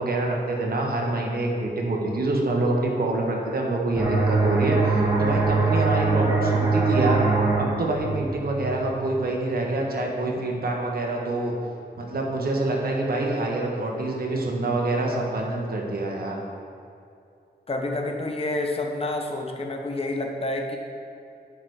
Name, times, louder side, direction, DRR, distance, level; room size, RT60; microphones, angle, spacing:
voice 1, 0.0-7.3 7.6-11.5 12.0-16.4, right 2 dB, 60° right, 0 dB, 1.5 m, -26 dB
sound 1, 4.0-9.3, right 3 dB, 20° right, 2.0 m, -23 dB
voice 2, 17.7-20.8, left 2 dB, 35° left, 2 dB, 1.0 m, -28 dB
9.0 x 6.9 x 4.9 m, 2.6 s
wide cardioid pair, 140°, 17 cm